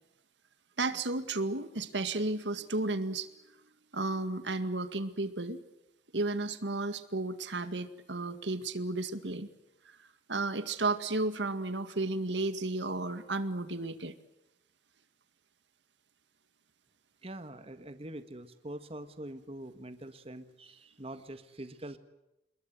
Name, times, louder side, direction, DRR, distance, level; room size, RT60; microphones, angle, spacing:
voice 1, 0.8-3.3 3.9-5.6 6.1-9.5 10.3-14.1, right 2 dB, 80° right, 11 dB, 2.0 m, -33 dB
voice 2, 17.2-22.0, right 1 dB, 35° right, 10 dB, 1.7 m, -44 dB
28.0 x 21.5 x 8.1 m, 0.90 s
head